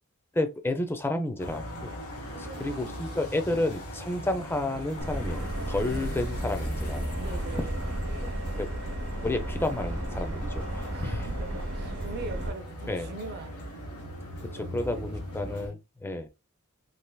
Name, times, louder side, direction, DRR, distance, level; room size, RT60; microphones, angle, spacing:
voice 1, 0.3-2.0 2.3-7.0 7.6-7.7 8.2-8.7 9.2-11.3 12.9-13.1 14.5-16.3, left 2 dB, 10° left, 0.4 m, -31 dB
sound 1, 1.4-15.7, equal, 90° left, 1.1 m, -39 dB
sound 2, 1.7-15.7, left 1 dB, 50° left, 0.6 m, -49 dB
voice 2, 2.2-3.1 5.8-6.1 7.2-7.8 10.8-13.7 14.6-15.8, right 3 dB, 50° right, 0.5 m, -43 dB
Subway metro underground, 5.0-12.5, right 1 dB, 65° right, 0.9 m, -34 dB
3.3 x 2.8 x 2.2 m
head